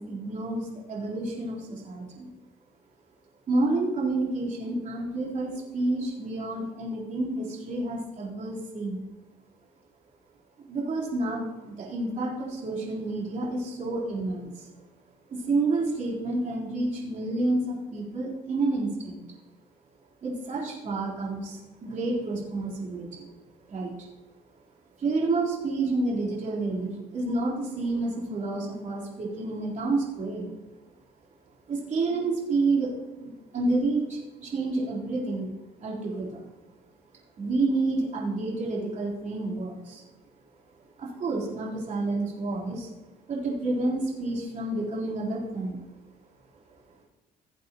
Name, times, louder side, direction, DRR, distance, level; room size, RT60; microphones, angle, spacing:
voice 1, 0.0-2.3 3.5-9.0 10.7-14.7 15.3-19.3 20.2-23.2 23.7-23.9 25.0-30.5 31.7-32.9 33.2-35.5 35.8-36.4 37.4-40.1 41.0-42.9 43.3-45.8, right 2 dB, 45° right, -5 dB, 3.8 m, -29 dB
17.0 x 8.3 x 3.0 m, 1.1 s
cardioid pair, 110°, 17 cm